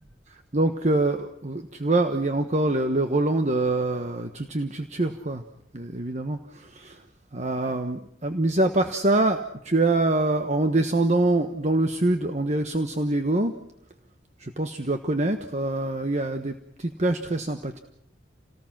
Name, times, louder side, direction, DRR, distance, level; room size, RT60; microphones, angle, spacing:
voice 1, 0.5-5.4 5.7-7.0 7.3-13.5 14.4-17.8, right 2 dB, 40° right, 7 dB, 1.2 m, -25 dB
29.0 x 19.0 x 6.0 m, 0.74 s
head